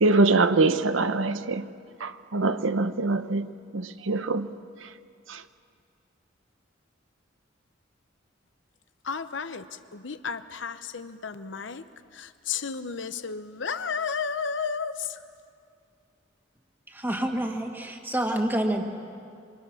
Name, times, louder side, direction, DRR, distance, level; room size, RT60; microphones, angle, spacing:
voice 1, 0.0-1.6 2.0-4.5 5.3-5.4, right 3 dB, 90° right, 0.9 m, -24 dB
voice 2, 9.0-11.8 12.1-15.2, left 5 dB, 65° left, 0.9 m, -33 dB
voice 3, 16.9-18.8, right 1 dB, 10° right, 2.0 m, -28 dB
26.5 x 25.0 x 6.5 m
head